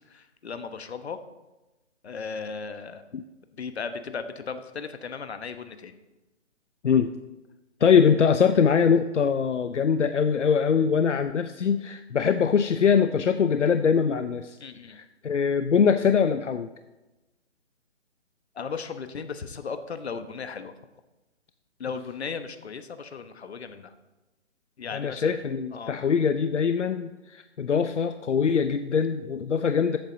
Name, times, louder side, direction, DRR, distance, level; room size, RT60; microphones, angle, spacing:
voice 1, 0.1-1.2 2.0-3.0 3.6-6.0 14.6-15.0 18.5-20.7 21.8-24.0 24.8-25.4 25.7-26.0, left 5 dB, 60° left, 9 dB, 1.2 m, -36 dB
voice 2, 7.8-14.6 14.9-16.7 24.9-30.0, left 6 dB, 80° left, 9 dB, 0.7 m, -23 dB
14.5 x 8.1 x 4.0 m, 1.1 s
figure-of-eight pair, 150°, 36 cm